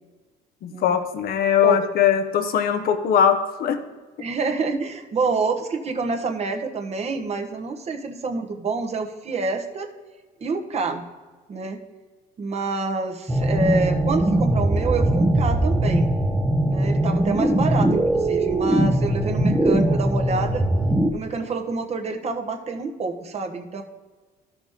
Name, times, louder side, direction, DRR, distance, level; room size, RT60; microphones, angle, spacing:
voice 1, 0.6-3.8, left 8 dB, 60° left, 8 dB, 0.9 m, -20 dB
voice 2, 4.2-9.9 10.4-11.0 11.5-11.8 12.4-16.1 16.6-20.6 21.1-23.8, right 4 dB, 40° right, 4 dB, 1.2 m, -27 dB
sound 1, 13.3-21.1, right 1 dB, 10° right, 0.8 m, -21 dB
13.0 x 6.0 x 3.6 m, 1.3 s
cardioid pair, 110°, 17 cm